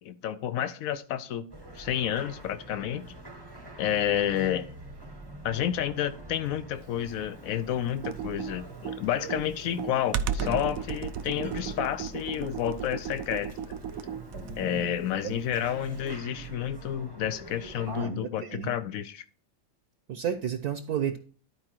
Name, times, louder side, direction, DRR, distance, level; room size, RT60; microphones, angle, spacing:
voice 1, 0.0-1.5 1.8-3.1 3.8-4.7 5.4-13.8 14.6-19.2, left 10 dB, 80° left, 0.7 m, -30 dB
sound 1, 1.5-18.1, right 2 dB, 20° right, 0.7 m, -44 dB
Computer keyboard, 7.9-14.8, right 7 dB, 90° right, 0.7 m, -34 dB
voice 2, 17.9-18.7 20.1-21.2, right 8 dB, 60° right, 1.1 m, -31 dB
12.0 x 4.8 x 4.5 m
omnidirectional pair, 2.1 m